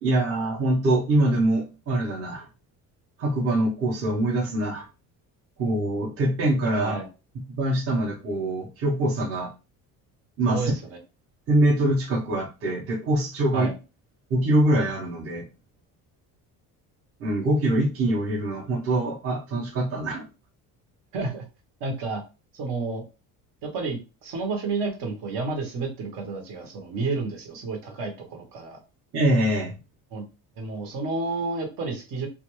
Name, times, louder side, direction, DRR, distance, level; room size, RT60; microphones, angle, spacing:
voice 1, 0.0-2.5 3.2-4.9 5.6-7.0 7.6-9.5 10.4-10.7 11.5-13.7 14.3-15.4 17.2-20.2 29.1-29.7, right 1 dB, 35° right, -2 dB, 0.7 m, -24 dB
voice 2, 10.5-11.0 13.5-13.7 21.1-21.4 21.8-22.2 22.5-23.0 23.6-28.8 30.1-30.2 30.6-32.3, right 3 dB, 65° right, 3 dB, 0.9 m, -30 dB
2.4 x 2.2 x 2.9 m, 0.29 s
cardioid pair, 170°, 37 cm